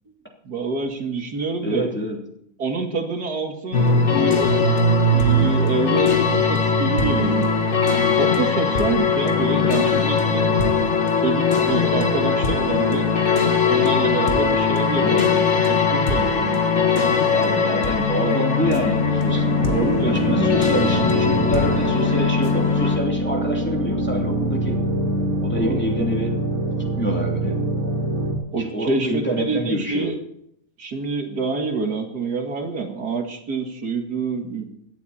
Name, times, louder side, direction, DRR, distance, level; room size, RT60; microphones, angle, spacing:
voice 1, 0.4-1.9 2.6-4.8 5.1-7.5 8.1-10.6 11.2-16.7 19.7-20.6 25.5-25.9 28.5-30.2 30.8-34.6, right 4 dB, 75° right, 3 dB, 2.5 m, -27 dB
voice 2, 1.6-2.2 9.7-10.0 14.9-15.3 17.3-19.5 20.0-24.8 25.4-26.3 27.0-27.6 28.6-30.1, equal, 5° left, -2 dB, 2.8 m, -27 dB
sound 1, 3.7-23.0, left 4 dB, 45° left, 1.8 m, -20 dB
Bass guitar, 4.4-10.7, right 11 dB, 25° right, 4.1 m, -34 dB
sound 2, 18.6-28.4, right 1 dB, 60° right, 3.2 m, -24 dB
17.0 x 12.0 x 4.3 m, 0.72 s
omnidirectional pair, 1.7 m